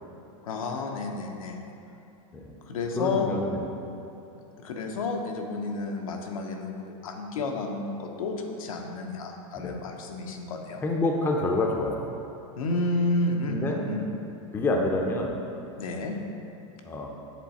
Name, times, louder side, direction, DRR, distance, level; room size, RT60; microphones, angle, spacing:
voice 1, 0.4-1.7 2.6-3.3 4.3-10.8 12.6-14.1 15.8-16.1, left 2 dB, 85° left, 2 dB, 0.7 m, -31 dB
voice 2, 3.0-3.6 9.6-9.8 10.8-12.1 13.5-13.8 14.5-15.4 16.8-17.1, left 2 dB, 10° left, 1 dB, 0.4 m, -27 dB
7.4 x 3.2 x 4.1 m, 2.7 s
supercardioid pair, 130°, 17 cm